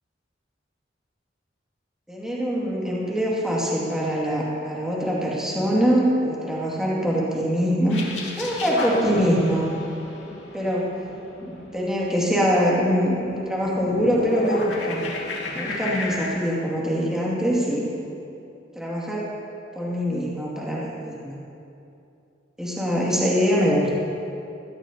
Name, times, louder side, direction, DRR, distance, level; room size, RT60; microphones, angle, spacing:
voice 1, 2.1-8.0 8.4-9.7 10.5-11.0 11.4-15.1 15.5-17.9 18.7-19.3 19.7-21.4 22.6-23.9, equal, 5° right, -6 dB, 2.3 m, -23 dB
sound 1, 7.9-16.3, left 2 dB, 75° left, 2.3 m, -32 dB
22.0 x 14.0 x 2.9 m, 2.7 s
head